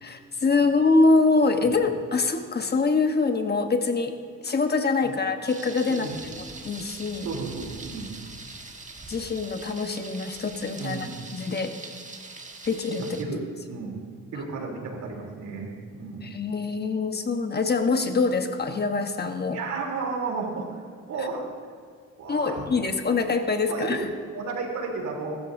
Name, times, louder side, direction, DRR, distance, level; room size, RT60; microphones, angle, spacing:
voice 1, 0.0-4.1 4.4-6.1 6.4-7.3 9.1-11.7 12.7-13.2 13.8-13.9 16.2-19.6 22.3-24.0, left 3 dB, 35° left, 6 dB, 1.2 m, -24 dB
Thunder, 5.5-13.2, right 3 dB, 25° right, 1.5 m, -42 dB
voice 2, 5.9-6.2 7.2-8.2 10.8-11.2 13.0-13.4 13.7-14.0 14.3-16.4 19.5-21.5 22.2-22.9 23.6-25.3, right 4 dB, 75° right, 0 dB, 3.4 m, -33 dB
22.5 x 13.0 x 2.7 m, 2.1 s
cardioid pair, 90°, 30 cm